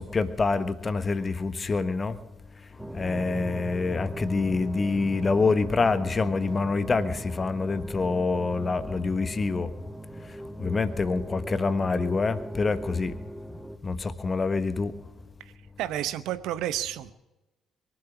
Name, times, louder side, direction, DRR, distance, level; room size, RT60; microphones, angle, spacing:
voice 1, 0.0-2.1 2.9-9.7 10.6-13.1 13.8-14.9, left 4 dB, 35° left, 13 dB, 1.3 m, -26 dB
sound 1, 2.8-13.8, right 1 dB, 5° right, 1.1 m, -39 dB
voice 2, 15.8-17.1, right 12 dB, 70° right, 14 dB, 0.8 m, -30 dB
22.5 x 7.6 x 7.2 m, 1.0 s
hypercardioid pair, 45°, 0 cm